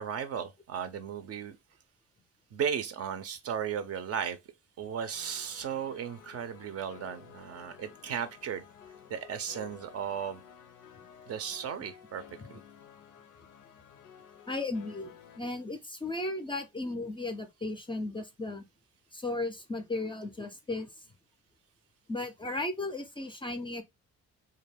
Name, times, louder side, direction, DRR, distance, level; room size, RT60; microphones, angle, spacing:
voice 1, 0.0-1.6 2.5-4.4 4.8-8.6 9.1-10.4 11.3-12.2 12.5-12.6, right 8 dB, 55° right, 0.5 m, -35 dB
sound 1, 5.1-15.4, left 8 dB, 85° left, 0.4 m, -53 dB
voice 2, 14.5-18.6 19.1-20.9 22.1-23.8, left 2 dB, 15° left, 0.4 m, -35 dB
2.2 x 2.0 x 3.3 m
cardioid pair, 90°, 30 cm